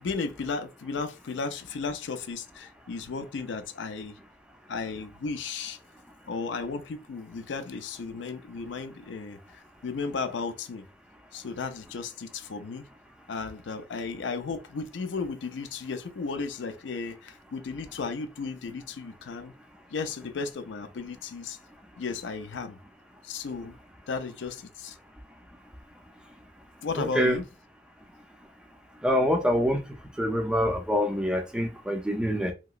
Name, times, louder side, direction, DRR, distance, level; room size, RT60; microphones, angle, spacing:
voice 1, 0.0-4.2 4.7-5.8 6.3-10.9 11.3-12.9 13.3-19.5 19.9-21.6 22.0-22.8 23.2-23.8 24.1-25.0 26.8-27.4, left 4 dB, 80° left, 0.4 m, -34 dB
voice 2, 27.0-27.4 29.0-29.8 30.2-32.5, equal, 5° right, 0.4 m, -25 dB
2.9 x 2.8 x 2.4 m
head